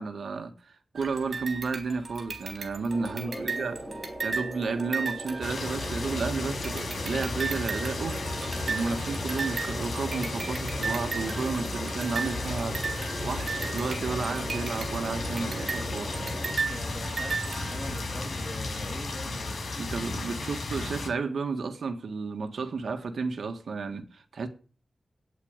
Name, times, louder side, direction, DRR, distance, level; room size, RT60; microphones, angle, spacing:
voice 1, 0.0-3.8 4.2-8.2 8.6-12.8 13.2-16.1 19.8-24.5, right 4 dB, 85° right, 1.8 m, -32 dB
sound 1, 1.0-6.2 6.6-18.2, right 4 dB, 65° right, 3.8 m, -36 dB
sound 2, 2.9-16.6, right 1 dB, 5° right, 4.6 m, -40 dB
voice 2, 3.1-4.1 16.6-19.6 20.3-20.4, left 1 dB, 25° left, 2.7 m, -42 dB
sound 3, 5.4-21.1, left 2 dB, 80° left, 5.4 m, -34 dB
9.5 x 8.5 x 9.0 m
wide cardioid pair, 85°, 0 cm